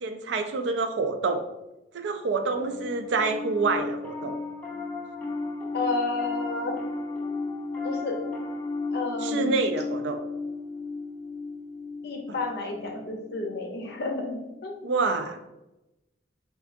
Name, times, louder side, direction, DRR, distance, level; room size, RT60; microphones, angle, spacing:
voice 1, 0.0-1.4 1.9-4.3 9.2-10.2 14.8-15.4, right 4 dB, 70° right, 7 dB, 0.3 m, -27 dB
Piano, 2.5-14.0, left 3 dB, 10° left, 0.5 m, -34 dB
voice 2, 5.7-6.8 7.8-8.2 8.9-9.7 12.0-14.7, left 3 dB, 60° left, 1 dB, 0.6 m, -31 dB
3.6 x 2.4 x 2.5 m, 0.96 s
head